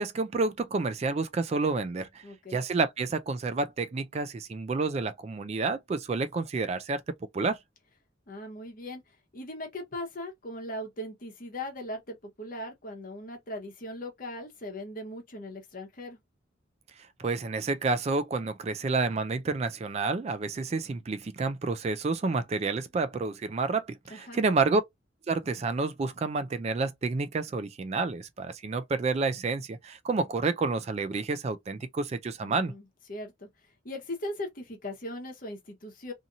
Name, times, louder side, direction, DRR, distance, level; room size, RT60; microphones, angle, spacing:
voice 1, 0.0-2.2 2.5-7.0 7.3-7.6 17.2-24.8 25.3-32.7, right 3 dB, 35° right, 0.3 m, -29 dB
voice 2, 2.2-2.6 8.3-16.2 24.1-24.4 32.4-33.5 33.8-36.1, left 1 dB, 45° left, 1.0 m, -39 dB
2.7 x 2.6 x 2.5 m
head